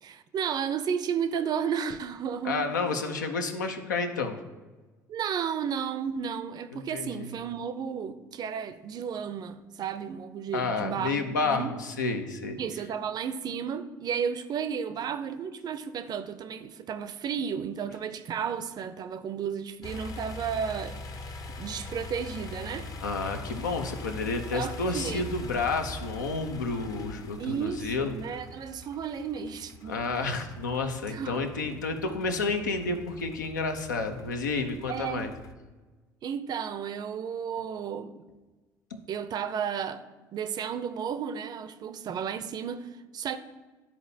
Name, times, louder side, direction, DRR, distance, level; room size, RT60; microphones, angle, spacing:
voice 1, 0.0-2.7 5.1-11.7 12.6-21.0 21.6-22.9 24.5-25.3 27.4-30.3 31.1-31.8 34.9-35.3 36.2-38.2 39.1-40.0 40.3-43.4, right 7 dB, 45° right, 0.5 m, -33 dB
voice 2, 2.4-4.4 6.7-7.3 10.5-12.6 23.0-28.1 29.8-35.3 38.9-39.0, left 3 dB, 80° left, 0.7 m, -30 dB
sound 1, 19.8-35.5, left 2 dB, 40° left, 0.8 m, -42 dB
12.0 x 4.2 x 2.7 m
figure-of-eight pair, 60°, 10 cm